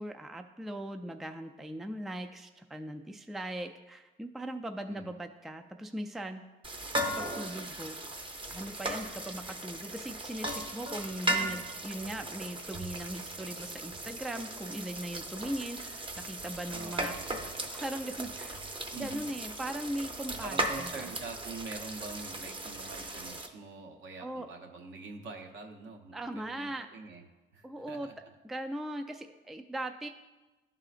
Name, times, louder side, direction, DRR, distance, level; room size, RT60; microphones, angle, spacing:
voice 1, 0.0-6.4 7.0-8.0 8.5-17.2 17.4-18.6 18.9-21.1 24.2-24.5 26.1-26.9 27.6-28.1 28.4-30.1, right 1 dB, ahead, 6 dB, 0.3 m, -39 dB
sound 1, 6.6-23.5, right 1 dB, 25° right, 0.7 m, -37 dB
voice 2, 16.7-17.6 18.9-19.3 20.4-27.2 27.5-28.1, right 3 dB, 70° right, 3 dB, 0.9 m, -45 dB
11.5 x 3.8 x 2.5 m, 1.1 s
cardioid pair, 90°, 20 cm